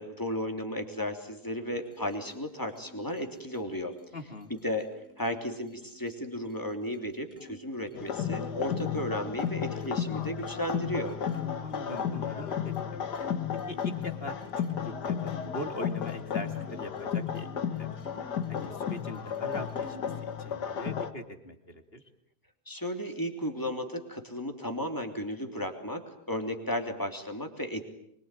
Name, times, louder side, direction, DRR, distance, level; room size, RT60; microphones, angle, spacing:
voice 1, 0.0-3.9 4.5-4.9 5.2-11.2 22.7-27.8, equal, 10° left, 4 dB, 3.3 m, -34 dB
sound 1, 1.8-7.5 7.8-8.8 9.4-12.3 12.7-12.9 13.1-15.6 16.0-17.6 18.0-19.1 19.3-20.2, left 2 dB, 10° right, 4.1 m, -52 dB
voice 2, 4.1-4.5 11.6-13.1 13.7-17.5 17.8-17.9 18.5-22.0, left 1 dB, 35° left, 6 dB, 2.8 m, -41 dB
sound 2, 8.0-21.1, left 8 dB, 80° left, 2.1 m, -33 dB
25.5 x 23.0 x 9.2 m, 0.73 s
omnidirectional pair, 1.8 m